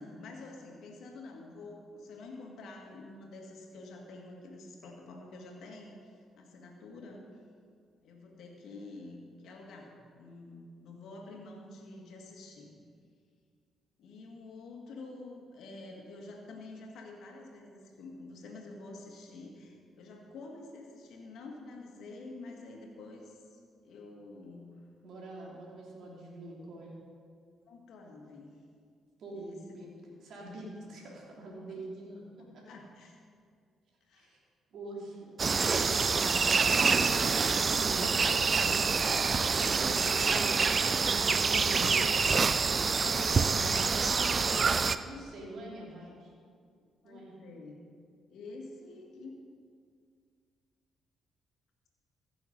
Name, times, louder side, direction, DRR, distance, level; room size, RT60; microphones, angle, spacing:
voice 1, 0.0-7.2 8.0-12.7 14.0-24.6 27.7-28.5 29.3-29.6 32.4-33.2 34.1-34.3 47.0-47.8 48.3-49.3, left 2 dB, 65° left, 1 dB, 1.9 m, -48 dB
voice 2, 25.0-26.9 29.2-29.9 30.2-32.2 32.5-32.6 34.1-34.4 34.7-37.3 37.7-42.2 43.1-44.0 45.1-46.3 47.0-47.3, right 1 dB, 65° right, -2 dB, 2.8 m, -45 dB
sound 1, 35.4-45.0, right 5 dB, 45° right, 0.4 m, -26 dB
14.5 x 7.0 x 5.3 m, 2.2 s
hypercardioid pair, 45°, 0 cm